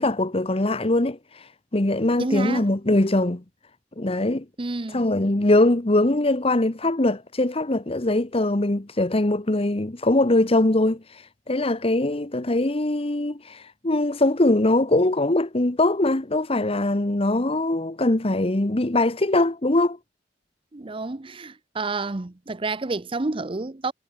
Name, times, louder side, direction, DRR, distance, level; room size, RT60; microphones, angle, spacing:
voice 1, 0.0-3.4 4.0-4.4 4.9-20.0, left 2 dB, 35° left, 1.2 m, -22 dB
voice 2, 2.2-2.7 4.6-5.1 20.7-23.9, right 3 dB, 30° right, 0.7 m, -29 dB
head